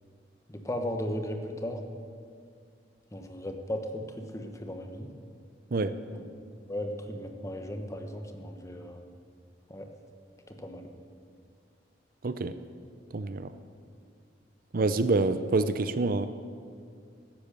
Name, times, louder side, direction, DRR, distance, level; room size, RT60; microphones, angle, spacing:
voice 1, 0.5-1.8 3.1-5.1 6.1-6.2 6.7-9.0 9.7-9.9 10.5-10.9, left 1 dB, 20° left, 5 dB, 1.2 m, -36 dB
voice 2, 12.2-12.6 13.1-13.5 14.7-16.3, right 3 dB, 55° right, 12 dB, 0.6 m, -27 dB
14.5 x 10.5 x 6.7 m, 2.2 s
head